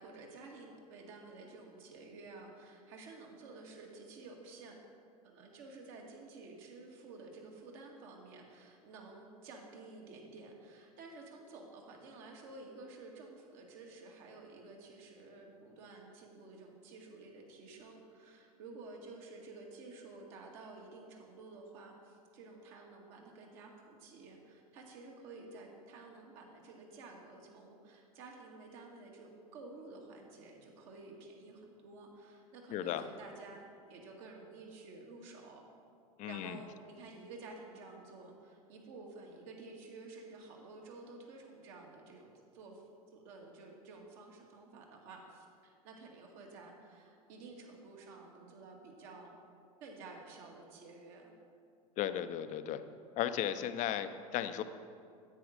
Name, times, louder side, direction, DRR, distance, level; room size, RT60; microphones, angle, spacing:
voice 1, 0.0-4.7 5.2-35.6 36.2-42.8 43.1-49.4 49.8-51.3, right 3 dB, 55° right, 0 dB, 2.0 m, -52 dB
voice 2, 32.7-33.0 36.2-36.6 52.0-52.8 53.2-54.6, left 10 dB, 40° left, 10 dB, 0.6 m, -35 dB
9.8 x 8.6 x 5.1 m, 2.3 s
hypercardioid pair, 90°, 19 cm